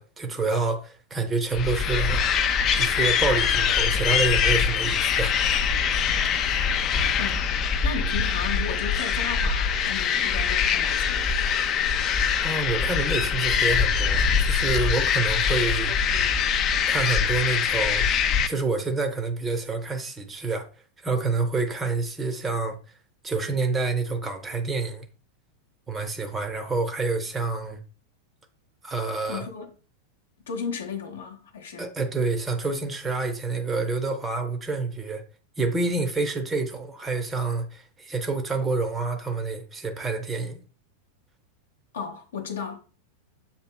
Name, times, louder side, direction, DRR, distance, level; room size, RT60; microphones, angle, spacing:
voice 1, 0.0-2.2 2.8-5.4 5.8-5.9 12.4-15.9 16.9-18.1 18.5-20.7 21.0-22.8 23.2-25.1 25.9-27.8 28.8-29.5 31.8-35.2 35.6-40.6, right 3 dB, 15° right, 0.6 m, -28 dB
sound 1, 1.5-18.5, left 7 dB, 35° left, 0.3 m, -23 dB
voice 2, 7.2-7.5 7.8-11.3 29.3-29.7 30.5-31.9 41.9-42.8, left 6 dB, 65° left, 0.7 m, -34 dB
7.0 x 2.7 x 2.2 m
figure-of-eight pair, 90°, 0 cm